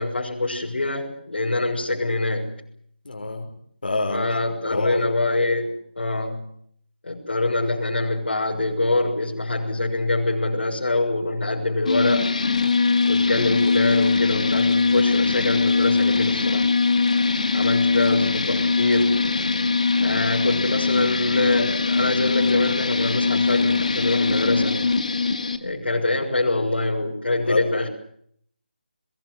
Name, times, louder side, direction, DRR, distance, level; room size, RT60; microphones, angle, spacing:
voice 1, 0.0-2.5 4.1-6.5 7.0-12.3 13.1-16.7 17.5-19.2 20.0-24.9 25.6-27.9, left 2 dB, 85° left, -2 dB, 6.6 m, -24 dB
voice 2, 3.0-3.5 3.8-4.4 4.7-5.0 27.4-27.6, left 2 dB, 60° left, 3 dB, 5.8 m, -26 dB
sound 1, 11.9-25.6, left 4 dB, 45° left, 2.2 m, -21 dB
24.5 x 22.0 x 8.1 m, 0.67 s
figure-of-eight pair, 180°, 6 cm